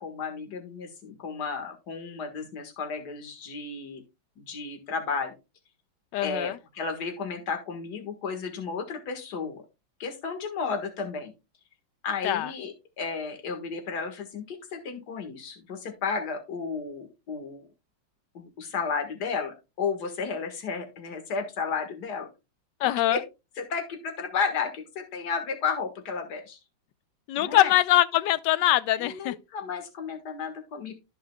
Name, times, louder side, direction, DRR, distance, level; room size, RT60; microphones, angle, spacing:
voice 1, 0.0-4.0 4.4-5.3 6.2-9.6 10.0-11.3 12.0-17.7 18.3-22.3 22.8-23.2 23.6-26.6 27.4-27.7 29.0-30.9, left 5 dB, 60° left, 2.2 m, -33 dB
voice 2, 6.1-6.6 12.2-12.5 22.8-23.2 27.3-29.3, left 14 dB, 75° left, 1.2 m, -23 dB
13.0 x 5.6 x 2.3 m
omnidirectional pair, 2.0 m